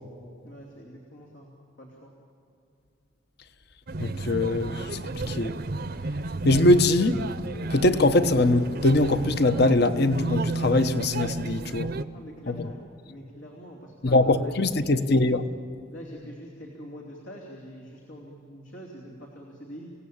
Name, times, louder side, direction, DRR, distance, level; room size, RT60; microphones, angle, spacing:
voice 1, 0.4-1.5 1.8-2.1 12.1-15.1 15.9-19.9, equal, 85° left, 3.2 m, -44 dB
sound 1, 3.9-12.0, right 2 dB, 50° right, 0.7 m, -32 dB
voice 2, 4.0-5.0 5.3-5.6 6.4-7.2 7.7-11.9 12.5-12.6 14.0-15.4, left 2 dB, 55° left, 0.9 m, -22 dB
28.0 x 17.5 x 8.7 m
head